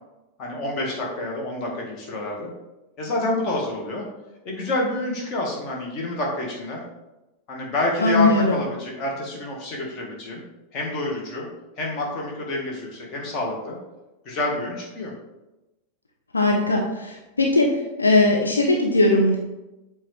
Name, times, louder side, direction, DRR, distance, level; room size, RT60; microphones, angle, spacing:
voice 1, 0.4-2.5 3.0-4.1 4.4-6.8 7.5-10.4 10.7-11.5 11.8-13.8 14.3-15.1, left 2 dB, 35° left, -1 dB, 1.8 m, -28 dB
voice 2, 8.0-8.6 16.3-19.4, left 2 dB, 80° left, 0 dB, 0.7 m, -19 dB
7.5 x 3.8 x 3.4 m, 1.0 s
figure-of-eight pair, 90°, 0 cm